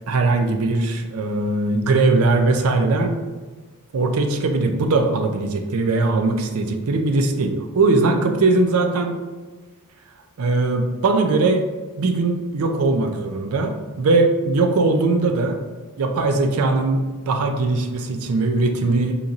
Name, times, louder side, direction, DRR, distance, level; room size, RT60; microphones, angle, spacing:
voice 1, 0.1-3.2 3.9-9.2 10.4-11.6 12.0-15.6 16.0-19.2, right 3 dB, 70° right, 5 dB, 0.4 m, -20 dB
2.9 x 2.6 x 3.8 m, 1.3 s
head